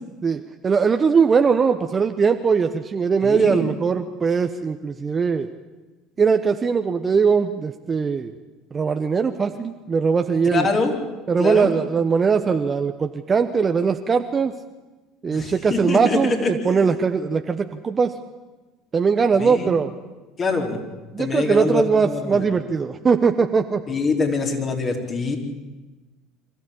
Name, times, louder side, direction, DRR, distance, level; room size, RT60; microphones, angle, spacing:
voice 1, 0.2-5.5 6.2-8.3 8.7-10.7 11.3-14.5 15.2-18.1 18.9-19.9 21.1-23.8, right 5 dB, 30° right, 6 dB, 1.2 m, -20 dB
voice 2, 3.2-3.6 10.5-10.9 11.4-11.7 15.3-16.9 19.4-19.7 20.4-20.8 21.2-22.4 23.9-25.4, left 3 dB, 35° left, 2 dB, 4.5 m, -24 dB
25.5 x 14.5 x 8.7 m, 1.2 s
hypercardioid pair, 75°, 0 cm